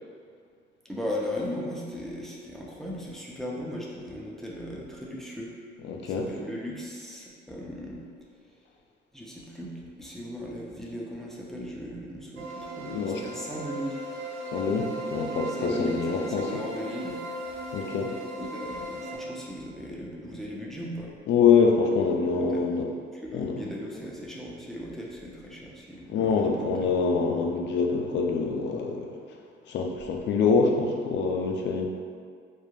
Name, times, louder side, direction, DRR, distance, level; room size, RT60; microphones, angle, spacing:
voice 1, 0.8-8.0 8.4-8.5 9.1-14.0 15.5-17.2 18.4-21.1 22.3-22.6 23.1-26.7, equal, ahead, -4 dB, 0.5 m, -37 dB
voice 2, 5.9-6.3 12.9-13.2 14.5-16.6 17.7-18.1 21.3-22.9 23.3-23.5 26.1-29.2 29.7-31.9, left 5 dB, 65° left, 2 dB, 0.4 m, -25 dB
sound 1, 12.4-19.2, right 1 dB, 75° right, 0.5 m, -37 dB
2.3 x 2.0 x 3.0 m, 2.1 s
cardioid pair, 90°, 20 cm